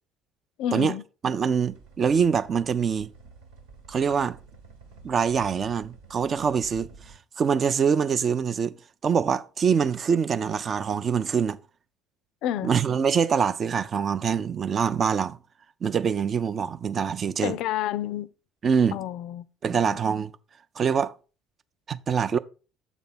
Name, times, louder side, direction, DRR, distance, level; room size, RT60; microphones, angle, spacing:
voice 1, 0.6-1.0 12.4-12.7 17.4-18.3 18.9-19.5 19.7-20.0, left 12 dB, 55° left, 0.4 m, -29 dB
voice 2, 1.2-3.1 3.9-4.4 5.0-6.9 7.4-8.7 9.0-11.6 12.6-15.4 15.8-17.6 18.6-19.0 19.6-20.3 20.8-21.1 21.9-22.4, right 6 dB, 35° right, 0.5 m, -24 dB
sound 1, 1.7-7.2, right 4 dB, 65° right, 1.2 m, -50 dB
7.2 x 4.0 x 5.4 m
figure-of-eight pair, 55°, 0 cm